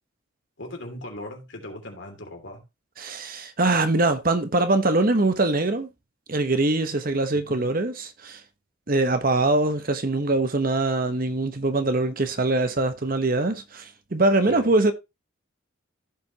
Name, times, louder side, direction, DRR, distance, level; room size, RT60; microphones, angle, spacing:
voice 1, 0.6-2.6 7.3-7.6 14.4-14.7, left 1 dB, 65° left, 3.0 m, -38 dB
voice 2, 3.0-5.9 6.3-8.4 8.9-14.9, right 2 dB, 45° right, 1.0 m, -23 dB
15.5 x 5.2 x 2.8 m
head